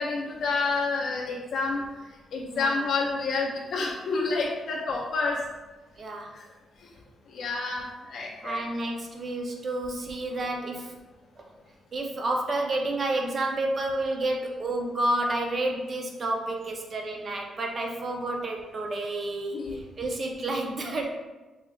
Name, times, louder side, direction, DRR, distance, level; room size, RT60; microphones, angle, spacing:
voice 1, 0.0-1.8 2.3-5.4 6.3-6.4 7.3-8.6 19.5-19.8, left 3 dB, 50° left, -3 dB, 0.4 m, -29 dB
voice 2, 2.5-2.8 6.0-6.3 8.4-10.9 11.4-11.5 11.9-21.1, right 2 dB, 35° right, 1 dB, 0.5 m, -30 dB
4.4 x 3.0 x 2.3 m, 1.2 s
wide cardioid pair, 170°, 0 cm